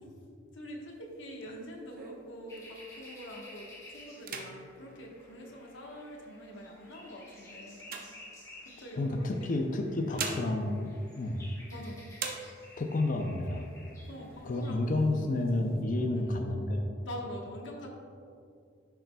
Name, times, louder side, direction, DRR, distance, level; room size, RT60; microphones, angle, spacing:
voice 1, 0.5-8.0 8.6-9.6 10.1-10.5 11.7-12.0 14.1-15.3 16.2-16.3 17.0-17.9, equal, 70° left, 0 dB, 1.2 m, -45 dB
sound 1, 0.9-3.1 3.6-3.8 4.1-6.1 6.7-8.9 9.8-11.8 12.1-13.0 13.4-13.5 13.8-14.5 14.9-15.8, right 5 dB, 45° right, 0.7 m, -43 dB
sound 2, 2.5-14.7, left 1 dB, 15° left, 1.5 m, -53 dB
voice 2, 9.0-11.5 12.8-13.7 14.4-16.9, left 2 dB, 40° left, 3 dB, 0.4 m, -30 dB
10.0 x 6.6 x 2.2 m, 2.4 s
head